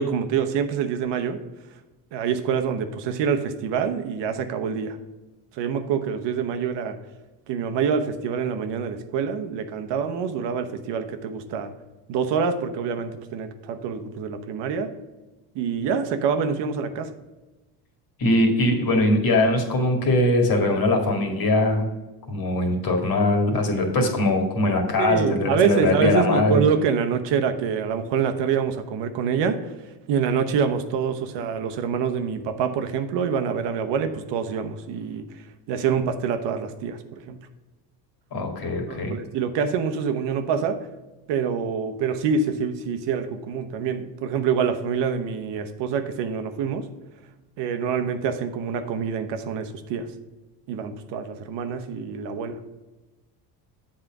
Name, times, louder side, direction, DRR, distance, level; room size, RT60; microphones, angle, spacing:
voice 1, 0.0-1.4 2.1-5.0 5.5-7.0 7.5-11.7 12.1-14.9 15.5-17.1 25.0-29.6 30.1-35.2 35.7-37.4 38.9-40.8 41.3-46.9 47.6-50.1 50.7-52.6, right 6 dB, 65° right, 7 dB, 1.0 m, -26 dB
voice 2, 18.2-21.9 22.3-26.6 38.3-39.1, left 2 dB, 45° left, 3 dB, 2.1 m, -21 dB
7.8 x 4.3 x 6.0 m, 1.2 s
supercardioid pair, 100°, 47 cm